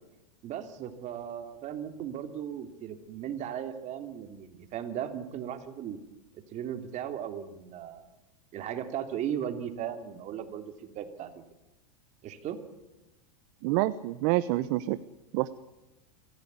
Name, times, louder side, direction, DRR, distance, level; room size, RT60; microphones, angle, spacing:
voice 1, 0.4-6.0 6.3-8.1 8.5-11.4 12.2-12.6, right 9 dB, 35° right, 7 dB, 3.0 m, -37 dB
voice 2, 13.6-15.0 15.3-15.5, right 17 dB, 55° right, 15 dB, 1.0 m, -27 dB
25.5 x 16.0 x 9.7 m, 1.0 s
supercardioid pair, 125°, 20 cm